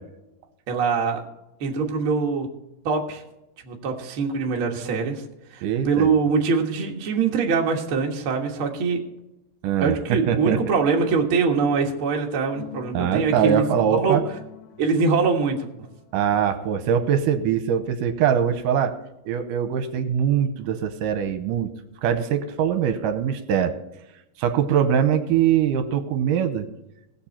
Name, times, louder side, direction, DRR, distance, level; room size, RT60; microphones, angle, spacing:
voice 1, 0.7-1.2 1.6-2.5 2.9-3.2 3.6-5.2 5.5-9.0 9.8-14.2 14.8-15.7, right 5 dB, 50° right, 1 dB, 1.8 m, -23 dB
voice 2, 5.6-6.1 9.6-10.6 12.9-14.2 16.1-18.9 19.3-21.7 22.0-23.7 24.4-26.7, right 8 dB, 80° right, 9 dB, 2.4 m, -22 dB
sound 1, 12.6-16.5, left 12 dB, 75° left, 2.0 m, -40 dB
18.5 x 6.9 x 4.4 m, 0.92 s
omnidirectional pair, 3.9 m